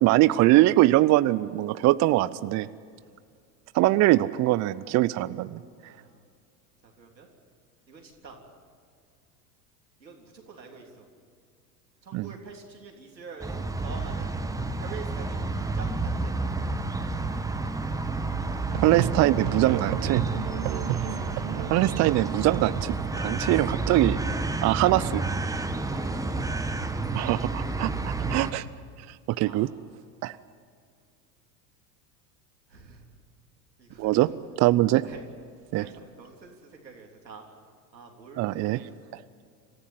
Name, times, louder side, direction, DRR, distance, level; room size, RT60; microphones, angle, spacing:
voice 1, 0.0-2.7 3.7-5.6 12.1-12.3 18.8-20.2 21.7-24.2 24.6-25.2 27.1-28.7 29.3-29.7 30.2-30.4 34.0-34.3 34.6-35.0 35.7-35.8 38.4-38.8 39.1-39.2, right 17 dB, 35° right, 16 dB, 0.6 m, -22 dB
voice 2, 5.8-6.2 6.8-7.3 7.9-8.4 10.0-11.1 12.0-14.3 14.8-16.4 25.5-26.8 29.4-29.7 32.7-33.0 33.8-34.4 35.0-35.2 35.8-37.4 37.9-38.8, right 4 dB, 90° right, 1 dB, 3.5 m, -46 dB
sound 1, 13.4-28.5, right 2 dB, 5° right, 1.3 m, -30 dB
Musical instrument, 18.7-23.5, right 16 dB, 50° right, 0.9 m, -32 dB
25.0 x 14.5 x 9.9 m, 2.2 s
hypercardioid pair, 85°, 50 cm